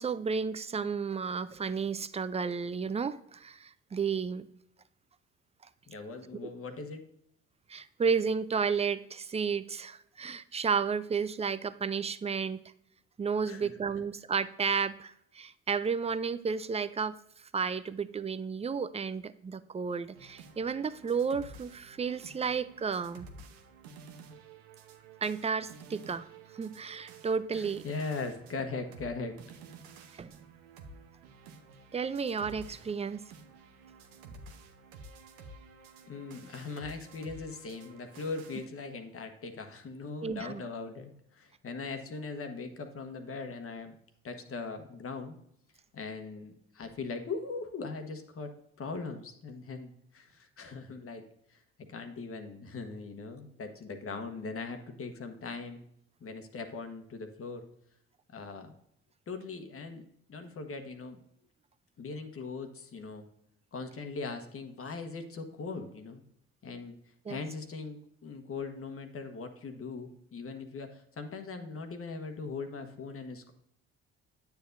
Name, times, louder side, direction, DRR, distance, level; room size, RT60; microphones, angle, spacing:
voice 1, 0.0-4.5 6.4-6.5 7.7-12.6 13.2-23.3 25.2-26.3 26.5-27.8 30.2-30.3 31.9-33.2 34.3-34.4 40.2-40.6 67.3-67.4, right 5 dB, 20° right, 15 dB, 0.4 m, -32 dB
voice 2, 5.9-7.0 13.5-13.7 27.5-29.4 36.1-44.0 44.2-45.4 45.9-51.2 51.5-51.6 51.9-55.8 56.2-57.7 58.3-58.7 59.3-61.2 62.0-63.3 63.7-66.2 66.6-73.5, left 4 dB, 45° left, 6 dB, 1.2 m, -40 dB
sound 1, 20.1-38.7, right 4 dB, 80° right, 0.9 m, -52 dB
9.2 x 7.0 x 2.6 m, 0.72 s
hypercardioid pair, 55°, 32 cm